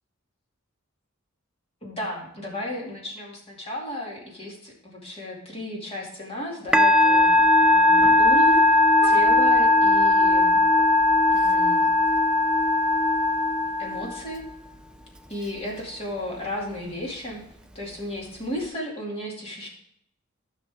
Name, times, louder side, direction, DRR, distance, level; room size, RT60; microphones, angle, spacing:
voice 1, 1.8-10.6 11.3-11.9 13.8-14.5 15.3-17.4 17.7-19.7, left 1 dB, 30° left, -2 dB, 2.3 m, -34 dB
Musical instrument, 6.7-14.4, left 2 dB, 5° right, 0.4 m, -18 dB
14.0 x 6.0 x 3.5 m, 0.71 s
head